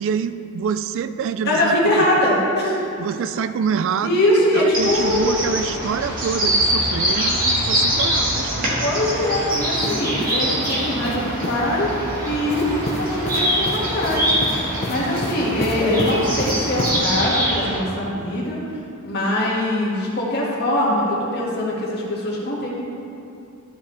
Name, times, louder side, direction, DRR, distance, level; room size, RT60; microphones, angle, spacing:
voice 1, 0.0-2.0 3.0-4.2 4.5-8.7, right 6 dB, 60° right, 11 dB, 0.3 m, -26 dB
voice 2, 1.4-2.8 4.0-5.4 8.8-11.9 12.2-14.3 14.9-18.6 19.0-22.7, left 1 dB, 50° left, -6 dB, 1.9 m, -22 dB
sound 1, 4.7-17.8, equal, 40° right, 1.6 m, -23 dB
sound 2, 9.5-11.7 12.5-17.1, left 1 dB, 30° left, 0.7 m, -30 dB
13.0 x 4.9 x 3.3 m, 2.7 s
head